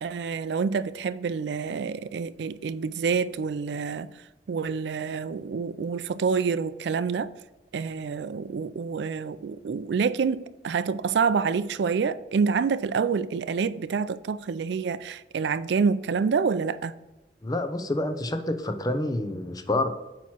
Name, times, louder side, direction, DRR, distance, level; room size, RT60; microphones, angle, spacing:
voice 1, 0.0-4.1 4.5-7.3 7.7-16.9, right 5 dB, 70° right, 0.4 m, -27 dB
voice 2, 17.4-19.9, left 1 dB, 20° left, 0.6 m, -28 dB
8.8 x 3.0 x 5.7 m
head